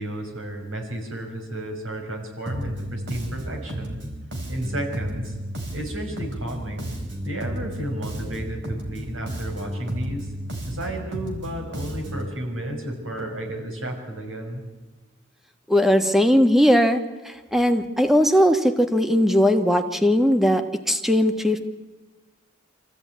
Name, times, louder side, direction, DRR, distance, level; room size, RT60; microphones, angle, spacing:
voice 1, 0.0-4.0 4.5-5.3 5.7-6.9 7.2-10.3 10.7-14.6, right 1 dB, 85° right, 2 dB, 6.1 m, -32 dB
Bass guitar, 2.5-12.3, equal, 55° right, 4.3 m, -33 dB
voice 2, 15.7-21.6, equal, ahead, 7 dB, 1.3 m, -19 dB
25.5 x 15.0 x 9.4 m, 1.2 s
head